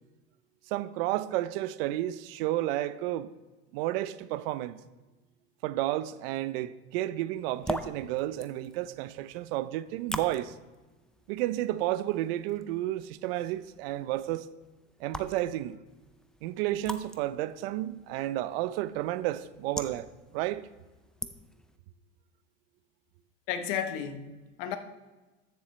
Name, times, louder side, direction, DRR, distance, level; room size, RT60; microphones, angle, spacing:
voice 1, 0.7-3.3 3.7-4.8 5.6-10.5 11.3-14.5 15.0-15.8 16.4-20.1 20.3-20.7, right 15 dB, 65° right, 0.6 m, -31 dB
sound 1, 7.4-21.8, left 1 dB, ahead, 0.4 m, -44 dB
voice 2, 23.5-24.8, left 9 dB, 60° left, 1.1 m, -33 dB
14.0 x 7.0 x 3.2 m
supercardioid pair, 115°, 32 cm